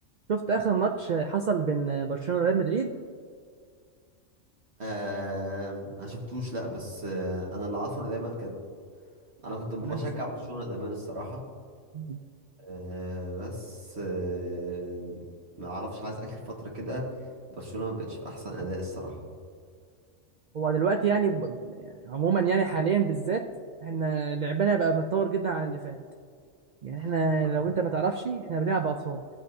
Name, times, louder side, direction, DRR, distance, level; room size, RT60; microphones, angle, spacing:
voice 1, 0.3-2.9 9.8-10.0 11.9-12.2 20.5-23.4 23.8-26.0 26.8-29.2, right 5 dB, 85° right, 4 dB, 0.4 m, -27 dB
voice 2, 4.8-8.5 9.4-11.4 12.6-15.2 15.6-17.1 17.5-19.2 27.0-27.1, right 1 dB, 55° right, -3 dB, 1.9 m, -34 dB
16.0 x 7.7 x 2.7 m, 2.1 s
omnidirectional pair, 1.4 m